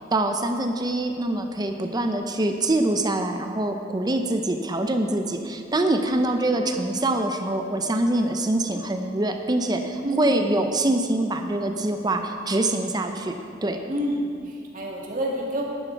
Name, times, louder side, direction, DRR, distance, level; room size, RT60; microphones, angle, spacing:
voice 1, 0.1-13.8, right 1 dB, 20° right, 5 dB, 0.6 m, -24 dB
voice 2, 10.0-10.4 13.9-15.6, equal, 45° right, -2 dB, 2.0 m, -29 dB
11.0 x 11.0 x 4.6 m, 2.3 s
head